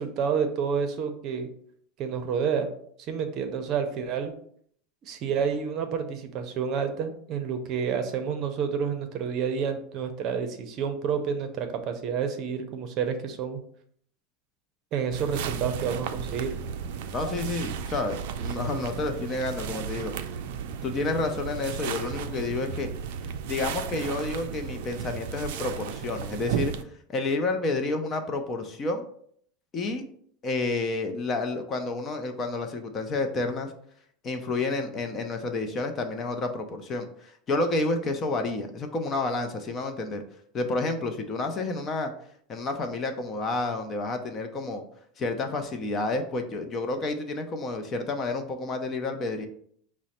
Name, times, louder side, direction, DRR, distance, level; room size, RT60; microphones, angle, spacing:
voice 1, 0.0-1.5 2.0-2.7 3.1-4.3 5.0-13.6 14.9-16.5, right 6 dB, 40° right, 7 dB, 0.6 m, -29 dB
sound 1, 15.1-26.8, right 7 dB, 75° right, 0.4 m, -34 dB
voice 2, 17.1-18.1 18.4-20.1 20.8-22.9 23.5-26.7 27.1-29.0 29.7-30.0 30.4-33.7 34.2-40.2 40.5-42.1 42.5-44.8 45.2-49.5, left 2 dB, 30° left, 6 dB, 0.6 m, -30 dB
6.0 x 2.1 x 4.2 m, 0.63 s
supercardioid pair, 145°, 0 cm